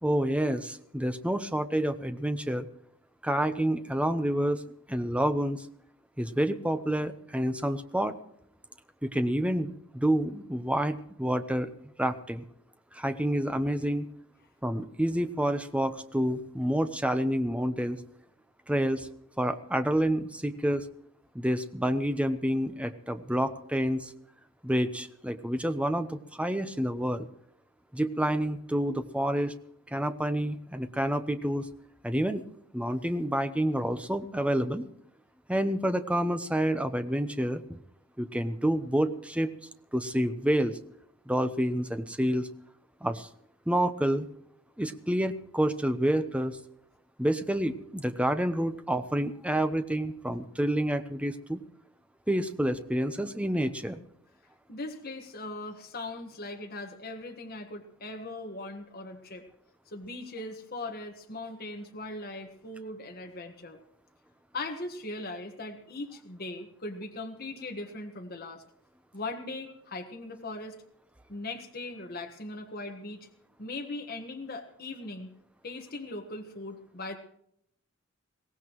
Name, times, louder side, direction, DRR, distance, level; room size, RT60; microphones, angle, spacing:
voice 1, 0.0-2.7 3.2-4.6 4.9-5.7 6.2-8.2 9.0-11.7 12.0-12.4 12.9-14.1 14.6-18.0 18.7-19.1 19.4-20.8 21.3-24.1 24.6-27.3 27.9-29.5 29.9-31.7 32.0-32.4 32.7-34.8 35.5-37.8 38.2-39.5 39.9-40.8 41.3-42.5 43.0-43.3 43.7-44.3 44.8-46.6 47.2-51.6 52.3-54.0, right 1 dB, 5° right, 9 dB, 0.8 m, -28 dB
voice 2, 54.7-59.5 59.9-63.8 64.5-68.6 69.1-70.8 71.3-73.3 73.6-75.3 75.6-77.2, left 2 dB, 45° left, 3 dB, 1.5 m, -39 dB
22.5 x 17.5 x 3.1 m, 0.72 s
head